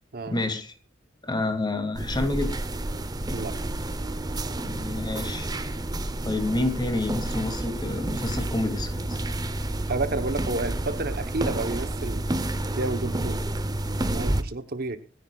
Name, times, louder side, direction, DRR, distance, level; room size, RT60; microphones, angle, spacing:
voice 1, 0.3-0.7 1.2-2.5 4.6-5.5 6.2-9.2, left 2 dB, 20° left, 6 dB, 2.6 m, -28 dB
sound 1, 1.9-14.4, right 1 dB, 20° right, 0.8 m, -30 dB
voice 2, 9.9-12.2 12.7-13.4 14.1-15.0, right 3 dB, 55° right, 9 dB, 1.0 m, -30 dB
25.5 x 10.0 x 2.4 m, 0.35 s
head